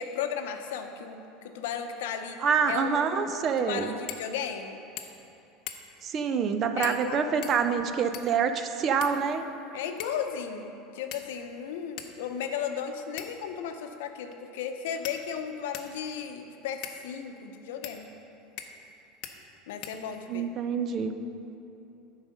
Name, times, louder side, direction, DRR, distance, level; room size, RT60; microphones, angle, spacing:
voice 1, 0.0-2.4 2.7-3.1 3.6-4.8 6.8-7.4 9.7-18.1 19.7-20.5, left 7 dB, 85° left, 6 dB, 0.7 m, -35 dB
voice 2, 2.4-3.9 6.0-9.4 20.3-21.1, right 6 dB, 35° right, 8 dB, 0.5 m, -26 dB
sound 1, 4.1-4.3 4.6-4.7 5.0-5.3 5.7-6.1 6.8-7.1 7.4-8.4 9.0-9.6 10.0-10.3 11.1-11.5 12.0-12.1 13.2-13.5 14.3-14.4 15.0-16.0 16.8-17.0 17.8-18.0 18.6-18.9 19.2-19.4 19.8-20.4, left 9 dB, 50° left, 0.7 m, -42 dB
8.8 x 4.9 x 6.4 m, 2.8 s
supercardioid pair, 145°, 0 cm